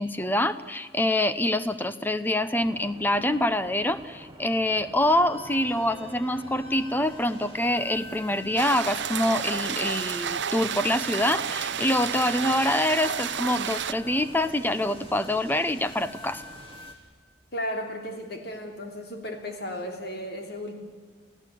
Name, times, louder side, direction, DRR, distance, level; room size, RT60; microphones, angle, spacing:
voice 1, 0.0-16.4, left 1 dB, 10° left, 13 dB, 0.7 m, -25 dB
sound 1, 2.6-16.9, right 2 dB, 20° right, 1.3 m, -48 dB
sound 2, 5.0-16.9, left 2 dB, 30° left, 3.4 m, -46 dB
sound 3, 8.6-13.9, right 8 dB, 65° right, 0.6 m, -31 dB
voice 2, 17.5-20.7, equal, 55° left, 4 dB, 3.2 m, -34 dB
29.0 x 16.0 x 8.5 m, 1.5 s
head